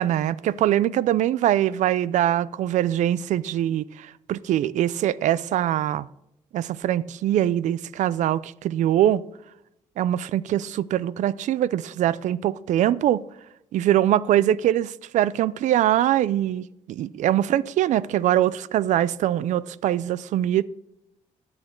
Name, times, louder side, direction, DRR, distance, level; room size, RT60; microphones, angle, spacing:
voice 1, 0.0-6.1 6.5-9.2 10.0-13.2 13.7-20.6, right 12 dB, 75° right, 0.4 m, -23 dB
11.0 x 8.5 x 4.6 m
cardioid pair, 85°, 13 cm